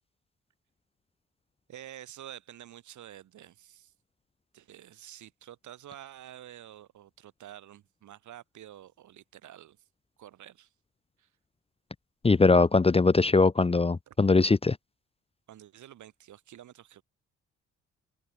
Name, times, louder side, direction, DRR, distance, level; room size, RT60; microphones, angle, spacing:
voice 1, 1.7-3.9 4.5-9.8 10.2-10.7 11.2-11.3 14.1-14.2 15.5-17.0, right 12 dB, 75° right, 6.4 m, -49 dB
voice 2, 12.2-14.8, left 3 dB, 20° left, 1.0 m, -21 dB
cardioid pair, 90°, 30 cm